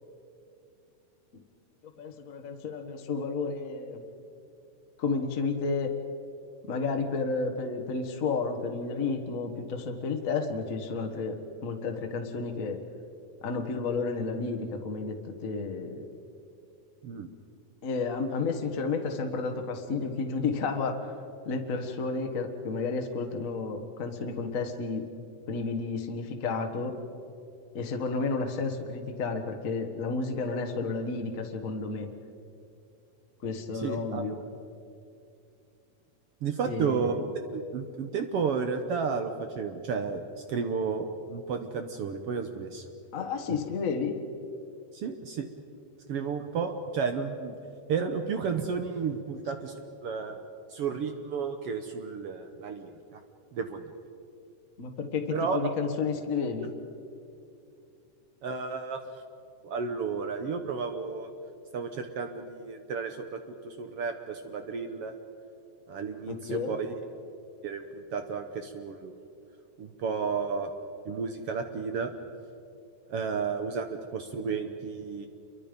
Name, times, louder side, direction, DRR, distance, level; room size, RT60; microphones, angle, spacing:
voice 1, 2.0-4.0 5.0-5.9 6.7-12.8 13.4-16.1 17.8-21.1 21.4-25.1 25.5-27.0 27.7-32.1 33.4-34.4 36.6-37.2 43.1-44.2 54.8-56.7 66.3-66.8, left 4 dB, 65° left, 4 dB, 0.8 m, -31 dB
voice 2, 33.7-34.2 36.4-37.2 37.5-40.2 40.5-42.8 44.9-45.5 46.1-47.6 47.9-50.4 50.7-53.2 53.5-53.8 55.3-55.6 58.4-59.0 59.6-61.3 61.7-65.1 65.9-66.9 67.6-69.1 69.8-70.7 71.0-72.1 73.1-75.3, right 5 dB, 75° right, 6 dB, 1.4 m, -32 dB
28.5 x 23.5 x 5.2 m, 2.6 s
omnidirectional pair, 4.1 m